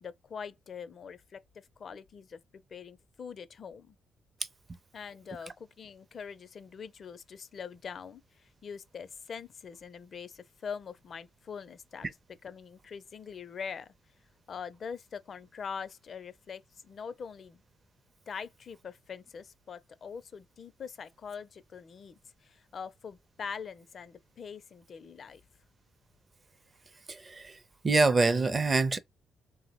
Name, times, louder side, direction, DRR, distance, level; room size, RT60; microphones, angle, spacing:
voice 1, 0.0-4.0 4.9-12.1 12.4-13.9 14.5-17.6 18.3-25.4, left 6 dB, 50° left, 0.4 m, -43 dB
voice 2, 27.1-29.0, right 3 dB, 30° right, 0.5 m, -26 dB
3.4 x 2.0 x 2.9 m
cardioid pair, 90°, 0 cm